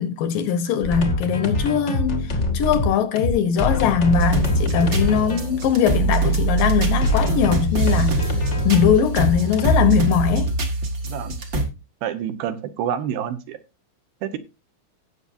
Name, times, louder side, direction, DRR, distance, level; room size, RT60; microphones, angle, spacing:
voice 1, 0.0-8.3 8.6-10.5, left 7 dB, 70° left, 2.3 m, -21 dB
sound 1, 0.8-9.8, left 2 dB, 45° left, 0.8 m, -25 dB
sound 2, 4.1-11.6, right 2 dB, 45° right, 1.1 m, -23 dB
voice 2, 11.0-11.4 12.0-13.6 14.2-14.4, right 9 dB, 75° right, 2.7 m, -28 dB
17.5 x 7.1 x 2.6 m
omnidirectional pair, 4.5 m